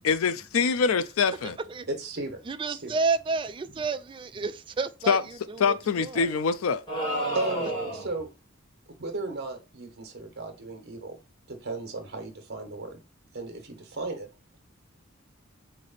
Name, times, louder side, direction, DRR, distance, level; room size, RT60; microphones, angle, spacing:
voice 1, 0.0-1.6 5.1-5.2 5.6-6.8, left 5 dB, 90° left, 0.4 m, -24 dB
voice 2, 1.9-2.4 2.7-3.0 7.3-8.3 9.0-11.2 11.5-13.0 13.3-14.3, right 2 dB, 55° right, 1.3 m, -35 dB
voice 3, 2.5-6.4, right 4 dB, 25° right, 0.3 m, -31 dB
sound 1, 6.9-8.2, right 1 dB, 25° left, 2.0 m, -30 dB
3.8 x 3.3 x 4.0 m
head